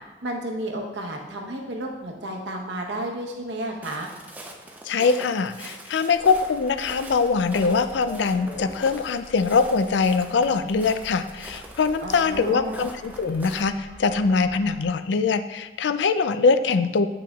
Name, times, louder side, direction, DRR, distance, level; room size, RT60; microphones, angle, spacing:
voice 1, 0.2-4.1 12.0-12.9, right 1 dB, 80° right, 1 dB, 1.0 m, -32 dB
Walk footsteps, 3.8-13.6, right 1 dB, 10° right, 0.5 m, -43 dB
voice 2, 4.9-17.1, left 4 dB, 85° left, 11 dB, 0.4 m, -22 dB
sound 1, 6.1-14.8, left 1 dB, 50° left, 1.8 m, -46 dB
8.6 x 5.9 x 2.4 m, 1.2 s
head